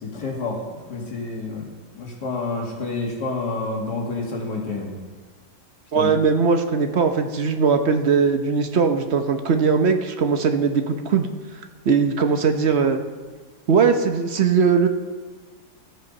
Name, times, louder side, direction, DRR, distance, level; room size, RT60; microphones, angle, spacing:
voice 1, 0.0-1.7 1.9-4.9 5.9-6.1, left 3 dB, 75° left, -1 dB, 2.7 m, -29 dB
voice 2, 5.9-11.3 11.8-13.0 13.7-14.9, right 5 dB, 50° right, 7 dB, 0.9 m, -20 dB
15.0 x 8.1 x 5.3 m, 1.4 s
omnidirectional pair, 1.8 m